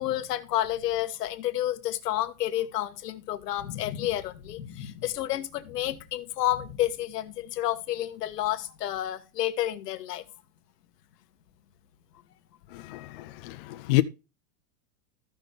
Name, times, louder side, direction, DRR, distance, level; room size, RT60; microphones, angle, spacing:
voice 1, 0.0-10.2, left 13 dB, 80° left, 1.3 m, -30 dB
voice 2, 12.7-14.0, left 19 dB, 40° left, 0.4 m, -28 dB
14.0 x 5.8 x 3.3 m
supercardioid pair, 160°, 47 cm